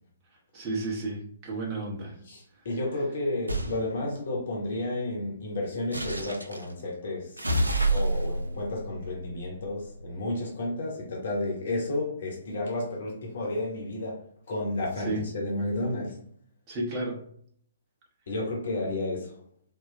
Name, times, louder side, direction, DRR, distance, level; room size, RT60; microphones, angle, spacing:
voice 1, 0.5-2.1 15.0-15.2 16.7-17.2, right 2 dB, 25° right, 1.0 m, -32 dB
voice 2, 2.2-7.5 7.9-16.2 18.3-19.4, left 2 dB, 55° left, 1.1 m, -32 dB
sound 1, 3.5-3.8 5.9-6.6 7.4-10.0, right 2 dB, 80° right, 0.5 m, -29 dB
4.4 x 2.3 x 3.2 m
figure-of-eight pair, 125°, 0 cm